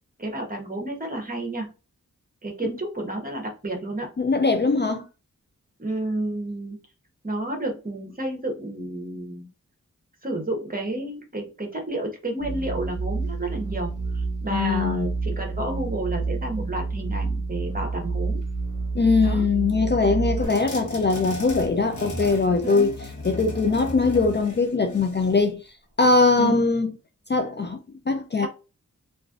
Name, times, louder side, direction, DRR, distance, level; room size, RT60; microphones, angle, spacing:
voice 1, 0.2-1.7 2.4-4.1 5.8-6.8 7.2-9.5 10.2-18.4 19.2-19.4 20.3-20.6 22.6-22.9 26.4-26.6 28.4-28.5, right 2 dB, 25° right, 1.1 m, -31 dB
voice 2, 4.2-5.1 14.5-15.1 18.9-22.9 23.2-25.6 26.0-26.9 27.3-27.8 28.1-28.5, left 4 dB, 35° left, 0.4 m, -21 dB
sound 1, 12.4-20.5, right 3 dB, 65° right, 0.7 m, -29 dB
sound 2, 20.4-25.4, left 1 dB, 65° left, 1.2 m, -35 dB
3.2 x 2.6 x 2.4 m
wide cardioid pair, 60°, 31 cm